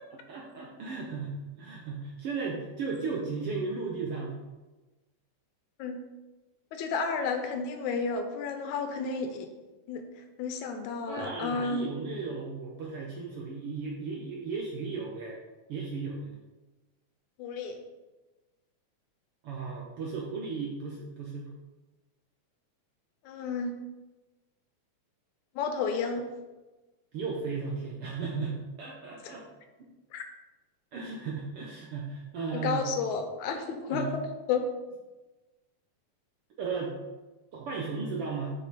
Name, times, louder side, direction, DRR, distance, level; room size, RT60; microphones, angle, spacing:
voice 1, 0.3-4.4 11.1-15.4 15.7-16.3 19.4-21.5 27.1-29.4 30.9-32.8 33.9-34.1 36.6-36.9 37.5-38.5, right 4 dB, 70° right, -2 dB, 1.4 m, -35 dB
voice 2, 6.7-9.5 9.9-10.0 10.4-11.9 17.4-17.8 23.3-23.8 25.6-26.3 29.2-29.4 30.1-30.2 32.5-34.1 34.5-34.6, left 5 dB, 80° left, 6 dB, 2.1 m, -31 dB
7.2 x 5.9 x 4.2 m, 1.2 s
omnidirectional pair, 3.5 m